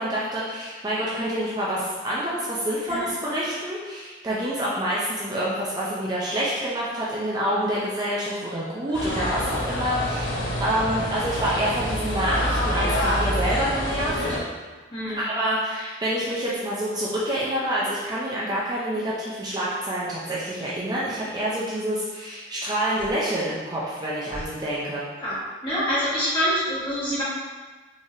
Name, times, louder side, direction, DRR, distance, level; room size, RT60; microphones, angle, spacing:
voice 1, 0.0-14.2 15.3-25.0, right 1 dB, 20° right, -7 dB, 0.5 m, -27 dB
sound 1, 8.9-14.4, equal, 80° left, 1.0 m, -26 dB
voice 2, 25.6-27.2, equal, 25° left, -10 dB, 1.4 m, -26 dB
3.9 x 3.2 x 2.6 m, 1.3 s
head